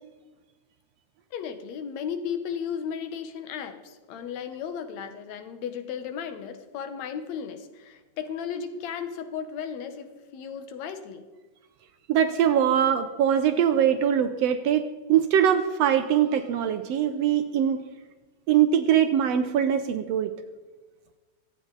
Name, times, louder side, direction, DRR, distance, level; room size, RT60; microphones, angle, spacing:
voice 1, 1.3-11.3, left 7 dB, 70° left, 8 dB, 2.3 m, -35 dB
voice 2, 12.1-17.8 18.5-20.3, right 9 dB, 75° right, 9 dB, 1.6 m, -22 dB
25.0 x 8.5 x 4.0 m, 1.3 s
omnidirectional pair, 3.3 m